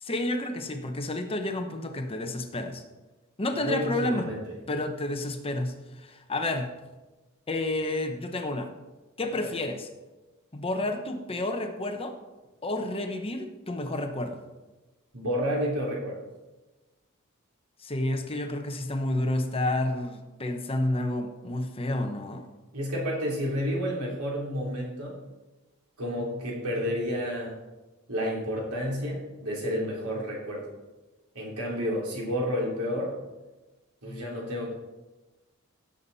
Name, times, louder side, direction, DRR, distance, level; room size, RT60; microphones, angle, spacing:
voice 1, 0.0-2.8 3.4-4.3 4.7-6.7 7.5-8.7 9.2-9.9 10.5-12.1 12.6-14.4 17.8-22.4 34.0-34.2, left 1 dB, 25° left, 5 dB, 0.9 m, -30 dB
voice 2, 3.6-4.5 9.4-9.6 15.1-16.2 22.7-25.2 26.0-27.6 28.1-30.7 31.4-33.1 34.0-34.7, equal, 85° right, -3 dB, 3.5 m, -30 dB
16.5 x 7.1 x 4.1 m, 1.2 s
head